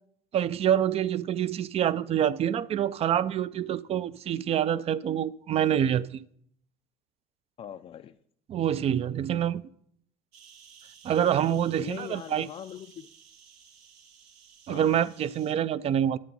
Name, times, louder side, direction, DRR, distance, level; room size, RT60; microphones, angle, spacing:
voice 1, 0.3-6.2 8.5-9.7 11.0-12.5 14.7-16.2, right 10 dB, 35° right, 0.4 m, -26 dB
voice 2, 7.6-8.2 11.8-13.1 14.7-15.0, left 9 dB, 35° left, 0.4 m, -41 dB
sound 1, 10.3-15.5, right 7 dB, 65° right, 1.4 m, -55 dB
8.7 x 8.6 x 5.3 m
supercardioid pair, 110°, 18 cm